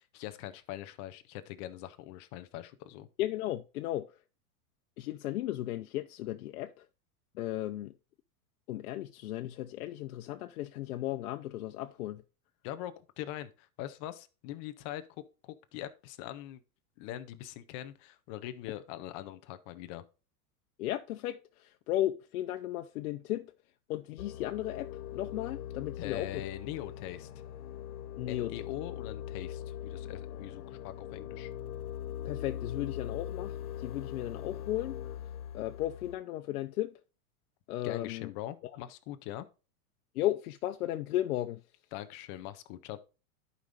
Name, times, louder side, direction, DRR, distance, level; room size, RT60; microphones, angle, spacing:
voice 1, 0.1-3.1 12.6-16.6 17.0-20.0 26.0-27.4 28.3-31.5 37.8-39.5 41.9-43.0, left 13 dB, 20° left, 0.3 m, -42 dB
voice 2, 3.2-4.2 5.0-6.8 7.3-7.9 8.7-12.2 20.8-23.5 23.9-26.4 28.2-28.5 32.2-35.2 35.5-36.9 37.7-38.3 40.1-41.6, left 14 dB, 70° left, 0.7 m, -35 dB
sound 1, 24.2-36.2, left 10 dB, 85° left, 1.2 m, -41 dB
11.5 x 5.2 x 2.5 m
supercardioid pair, 145°, 44 cm